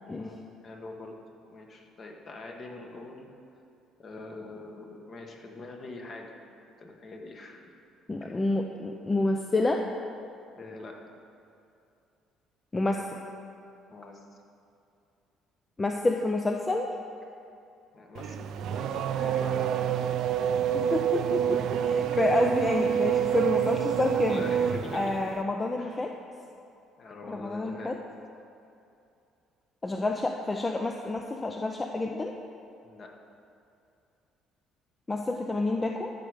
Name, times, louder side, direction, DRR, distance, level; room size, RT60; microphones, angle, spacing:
voice 1, 0.0-1.2 1.5-3.3 4.0-6.3 6.7-7.6 8.2-8.4 10.6-11.0 13.9-14.3 17.9-19.8 21.5-21.7 22.1-22.2 22.8-23.2 24.3-25.4 25.8-26.1 27.0-27.9 32.8-33.1, left 2 dB, 40° left, 1 dB, 1.5 m, -44 dB
voice 2, 8.1-9.8 12.7-13.0 15.8-16.9 20.7-24.4 24.9-26.1 27.3-28.0 29.8-32.3 35.1-36.1, left 2 dB, 20° left, 3 dB, 0.6 m, -28 dB
Race car auto racing / Accelerating revving vroom, 18.1-25.4, right 9 dB, 65° right, 0.5 m, -27 dB
13.5 x 6.2 x 5.1 m, 2.6 s
cardioid pair, 105°, 0 cm